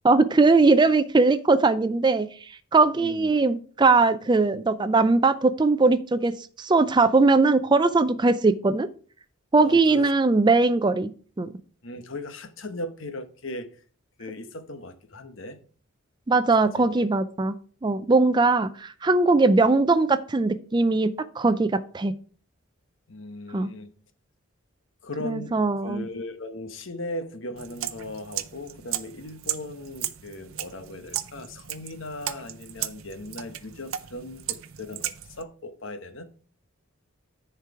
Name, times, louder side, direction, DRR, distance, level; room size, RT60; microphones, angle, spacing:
voice 1, 0.0-2.3 2.7-8.9 9.5-11.1 11.4-11.5 16.3-17.6 17.8-21.1 21.4-22.1 23.5-23.7 25.2-26.1, right 3 dB, 20° right, 0.4 m, -20 dB
voice 2, 2.9-3.3 9.6-10.1 11.8-13.8 14.2-15.6 16.6-17.0 23.1-23.9 25.0-36.3, left 1 dB, 65° left, 1.0 m, -38 dB
sound 1, 27.6-35.4, right 12 dB, 80° right, 0.6 m, -36 dB
10.0 x 4.6 x 4.7 m
head